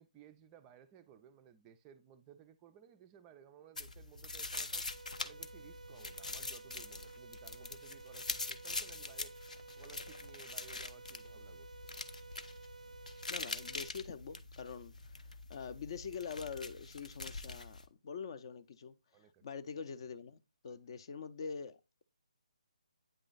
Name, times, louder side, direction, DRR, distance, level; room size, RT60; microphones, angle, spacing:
voice 1, 0.0-4.9 5.2-9.4 9.8-11.7 19.1-19.4 20.7-20.8, right 9 dB, 15° right, 0.4 m, -59 dB
sound 1, 3.8-17.9, left 3 dB, 85° left, 0.7 m, -44 dB
sound 2, 4.9-13.9, right 4 dB, 90° right, 0.4 m, -54 dB
voice 2, 13.3-18.9 19.4-22.0, left 6 dB, 45° left, 0.5 m, -45 dB
9.0 x 3.0 x 3.9 m
figure-of-eight pair, 150°, 4 cm